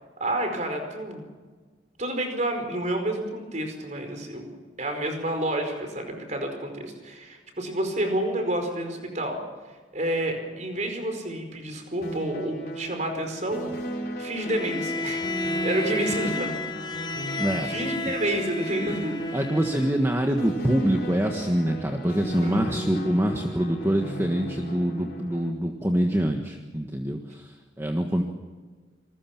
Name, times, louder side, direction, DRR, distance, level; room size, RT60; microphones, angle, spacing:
voice 1, 0.2-1.2 2.0-4.5 4.8-9.4 9.9-13.7 14.2-16.6 17.3-19.2 22.4-22.6, right 1 dB, 40° right, 5 dB, 4.9 m, -29 dB
sound 1, 12.0-25.5, right 1 dB, 50° left, 4.8 m, -36 dB
Bowed string instrument, 14.4-20.1, left 2 dB, 20° left, 1.2 m, -32 dB
voice 2, 17.4-17.7 19.3-28.2, equal, 15° right, 3 dB, 1.5 m, -25 dB
28.0 x 21.0 x 6.0 m, 1.4 s
head